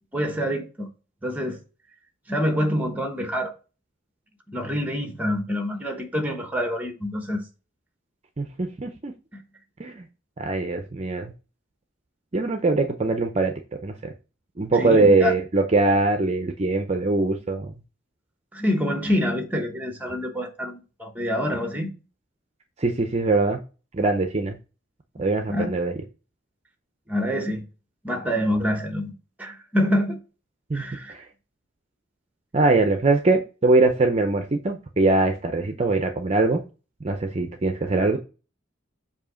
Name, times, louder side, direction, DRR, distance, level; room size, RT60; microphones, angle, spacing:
voice 1, 0.1-0.9 1.2-1.6 2.3-3.5 4.5-7.4 9.3-9.4 14.7-15.3 18.5-21.9 25.5-25.7 27.1-27.6 28.0-29.1 29.4-30.2 30.7-31.1, equal, 10° right, 1.0 m, -26 dB
voice 2, 8.4-9.1 9.8-10.1 10.4-11.3 12.3-13.5 13.8-14.1 14.6-17.7 22.8-23.6 23.9-24.6 25.2-25.9 30.7-30.8 31.1-31.2 32.5-36.6 37.0-38.2, right 3 dB, 35° right, 0.5 m, -22 dB
7.2 x 2.8 x 5.0 m
head